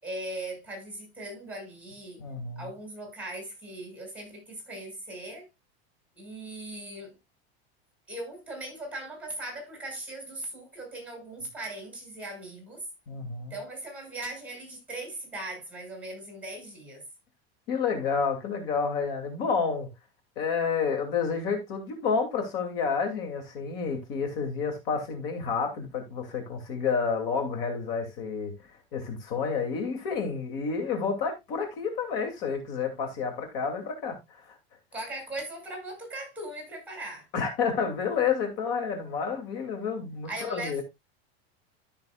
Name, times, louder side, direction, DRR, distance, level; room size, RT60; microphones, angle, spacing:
voice 1, 0.0-2.2 2.6-5.5 6.2-7.1 8.1-12.8 13.5-17.0 34.9-37.3 40.2-40.8, right 1 dB, 5° right, 6.2 m, -39 dB
voice 2, 2.2-2.6 13.1-13.5 17.7-19.9 20.4-28.5 28.9-34.5 37.3-40.8, left 5 dB, 65° left, 2.8 m, -30 dB
13.5 x 6.8 x 2.4 m
supercardioid pair, 140°, 31 cm